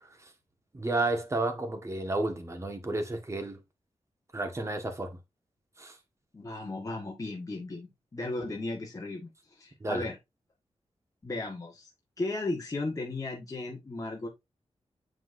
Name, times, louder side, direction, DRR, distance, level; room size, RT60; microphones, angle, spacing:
voice 1, 0.7-3.6 4.3-5.2 5.8-5.9 9.8-10.0, right 2 dB, 25° right, 1.6 m, -31 dB
voice 2, 6.3-9.3 9.6-10.2 11.2-11.9 12.2-14.3, left 2 dB, 30° left, 1.6 m, -35 dB
7.4 x 6.0 x 2.7 m
wide cardioid pair, 115°, 12 cm